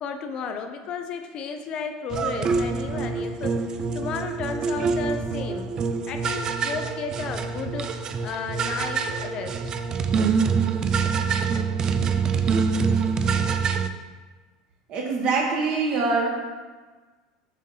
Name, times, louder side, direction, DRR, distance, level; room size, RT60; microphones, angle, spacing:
voice 1, 0.0-5.7 6.1-7.9 8.2-9.6, left 5 dB, 45° left, 6 dB, 0.5 m, -33 dB
sound 1, 2.1-13.9, right 5 dB, 35° right, 0.4 m, -25 dB
voice 2, 14.9-16.3, right 4 dB, 50° right, -1 dB, 1.4 m, -24 dB
7.3 x 2.6 x 5.5 m, 1.4 s
supercardioid pair, 115°, 2 cm